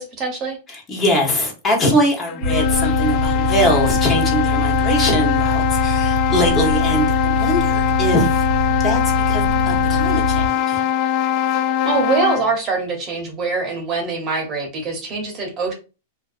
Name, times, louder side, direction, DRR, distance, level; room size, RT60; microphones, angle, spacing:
voice 1, 0.0-0.6 11.8-15.7, right 4 dB, 30° right, 2 dB, 0.8 m, -23 dB
voice 2, 0.7-8.4 8.8-10.8, equal, 25° left, 0 dB, 0.9 m, -22 dB
sound 1, 2.3-12.6, left 10 dB, 40° left, 0.4 m, -21 dB
sound 2, 2.4-10.5, left 1 dB, 85° right, 0.3 m, -23 dB
2.4 x 2.3 x 2.4 m, 0.32 s
hypercardioid pair, 130°, 0 cm